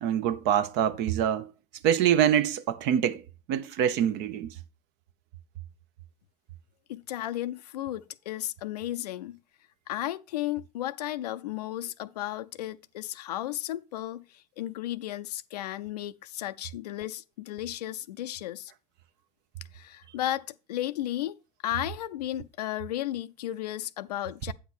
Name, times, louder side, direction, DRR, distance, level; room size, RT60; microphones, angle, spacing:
voice 1, 0.0-1.5 1.8-3.2 3.5-4.5, right 9 dB, 55° right, 0.8 m, -25 dB
voice 2, 6.9-9.4 9.9-18.7 19.7-21.4 21.6-24.5, left 13 dB, 80° left, 0.4 m, -34 dB
8.6 x 5.9 x 4.3 m
hypercardioid pair, 70°, 20 cm